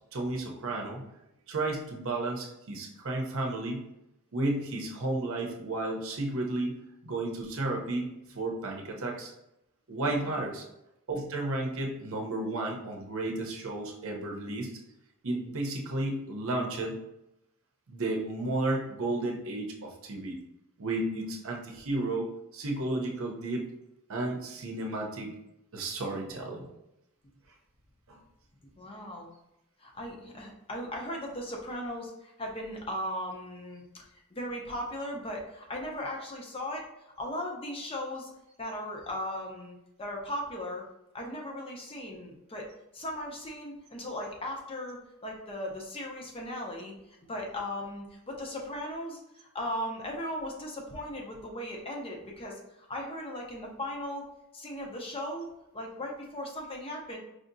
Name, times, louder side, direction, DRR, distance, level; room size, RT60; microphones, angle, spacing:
voice 1, 0.1-1.0 1.5-3.8 4.3-9.3 9.9-10.6 11.1-14.7 15.2-17.0 17.9-20.4 20.8-23.7 24.1-25.3 25.7-26.7 28.1-28.2, right 2 dB, 65° right, 1 dB, 0.7 m, -33 dB
voice 2, 28.8-29.3 29.8-34.0 34.3-38.3 38.6-40.8 41.1-42.7 42.9-46.9 47.3-54.3 54.5-55.5 55.7-57.2, left 1 dB, 25° left, 0 dB, 0.6 m, -37 dB
4.9 x 2.7 x 2.6 m, 0.87 s
head